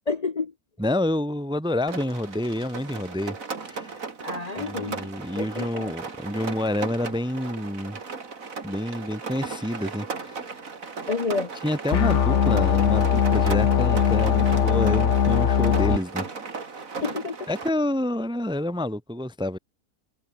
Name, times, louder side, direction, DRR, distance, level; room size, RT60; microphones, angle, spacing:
voice 1, 0.1-0.5 4.2-5.0 5.4-5.9 11.1-11.5 12.3-12.7 17.0-17.5, left 4 dB, 35° left, 0.8 m, -30 dB
voice 2, 0.8-3.4 3.6-4.0 4.6-8.0 8.6-10.5 11.6-16.3 17.5-19.6, left 1 dB, 5° right, 0.7 m, -28 dB
Rain, 1.9-17.7, right 4 dB, 80° right, 2.8 m, -36 dB
sound 1, 11.9-16.0, left 8 dB, 60° left, 1.4 m, -20 dB
omnidirectional pair, 1.4 m